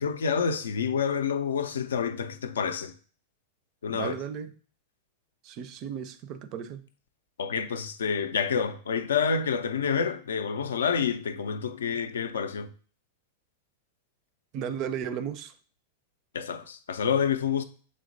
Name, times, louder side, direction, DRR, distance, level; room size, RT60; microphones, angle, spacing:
voice 1, 0.0-2.9 3.8-4.1 7.4-12.7 16.3-17.6, left 6 dB, 70° left, 0.4 m, -28 dB
voice 2, 3.9-4.5 5.4-6.8 14.5-15.5, right 8 dB, 40° right, 0.4 m, -35 dB
6.9 x 3.1 x 2.5 m
figure-of-eight pair, 95°, 0 cm